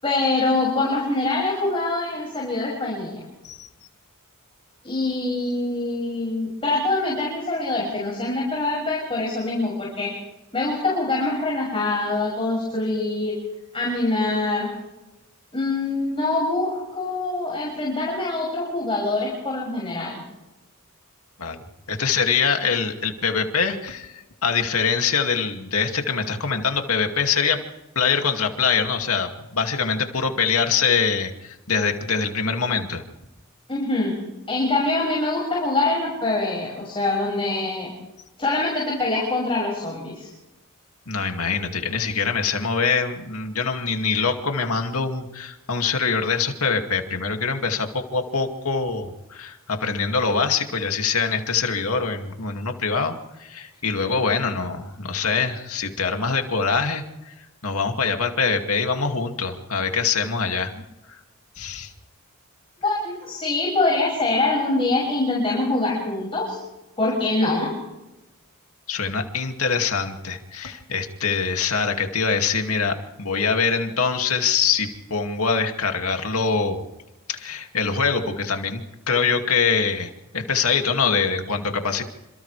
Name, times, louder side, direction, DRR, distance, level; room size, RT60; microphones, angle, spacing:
voice 1, 0.0-3.2 4.8-10.1 10.5-13.4 13.7-14.7 15.5-20.2 33.7-34.2 34.5-37.9 38.4-40.3 62.8-66.6 67.0-67.7, left 2 dB, 25° left, -3 dB, 6.4 m, -24 dB
voice 2, 21.9-27.6 28.0-33.0 41.1-57.3 57.6-60.7 61.6-61.9 68.9-76.8 77.3-78.8 79.1-82.0, left 5 dB, 90° left, 4 dB, 2.4 m, -24 dB
28.5 x 27.0 x 3.4 m, 1.0 s
head